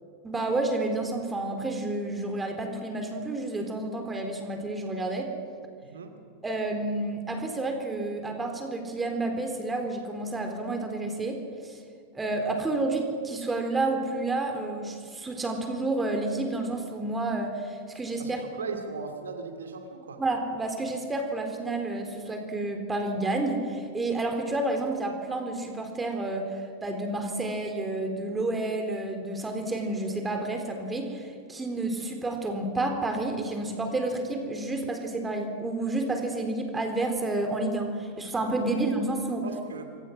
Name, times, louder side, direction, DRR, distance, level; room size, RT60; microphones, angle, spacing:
voice 1, 0.2-5.3 6.4-11.4 11.6-11.8 12.1-18.4 18.7-18.8 20.2-39.4, right 2 dB, 15° right, 4 dB, 3.9 m, -30 dB
voice 2, 18.2-20.2 38.8-38.9 39.4-39.9, right 5 dB, 70° right, 5 dB, 2.4 m, -38 dB
27.0 x 24.0 x 6.2 m, 2.2 s
figure-of-eight pair, 90°, 0 cm